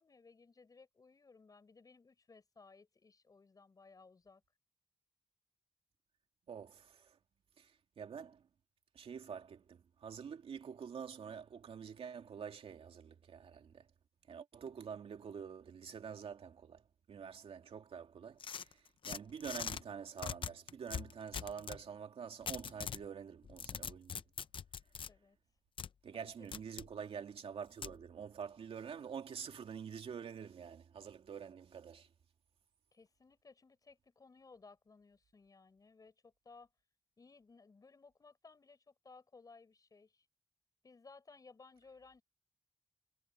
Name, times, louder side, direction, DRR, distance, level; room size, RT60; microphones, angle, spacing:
voice 1, 0.0-4.4 25.1-25.4 26.1-26.5 32.9-36.7 37.2-40.3 40.8-42.2, left 4 dB, 40° left, 6.3 m, -60 dB
voice 2, 6.5-7.2 7.6-8.5 8.9-13.9 14.3-16.8 17.1-24.2 26.0-32.1, right 7 dB, 80° right, 2.5 m, -47 dB
sound 1, 18.4-19.8 20.2-21.8 22.5-23.0 23.4-25.1 25.8-25.9 26.5-26.9 27.8-28.0, left 7 dB, 65° left, 0.6 m, -42 dB
wide cardioid pair, 115°, 10 cm